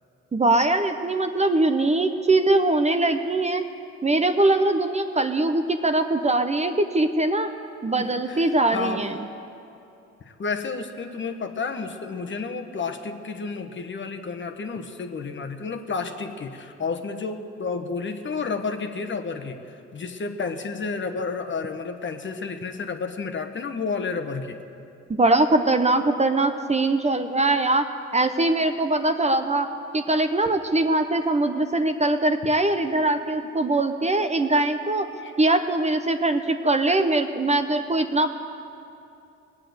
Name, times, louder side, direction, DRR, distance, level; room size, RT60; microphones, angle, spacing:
voice 1, 0.3-3.6 4.0-7.5 7.8-9.2 25.1-27.8 28.1-29.7 29.9-35.0 35.4-38.3, right 2 dB, 20° right, 7 dB, 0.8 m, -22 dB
voice 2, 8.0-9.0 10.3-24.6 35.2-35.3, left 4 dB, 40° left, 6 dB, 1.1 m, -31 dB
18.5 x 8.7 x 7.9 m, 2.7 s
cardioid pair, 90°, 30 cm